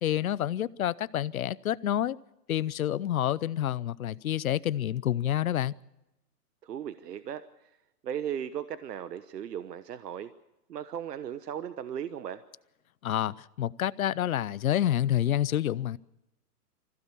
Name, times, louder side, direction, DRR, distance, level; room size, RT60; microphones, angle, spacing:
voice 1, 0.0-2.2 2.5-5.7 13.0-16.0, left 11 dB, 65° left, 0.7 m, -28 dB
voice 2, 6.6-7.7 8.0-10.3 10.7-12.4, right 9 dB, 85° right, 1.2 m, -37 dB
25.5 x 15.5 x 6.9 m
hypercardioid pair, 180°, 47 cm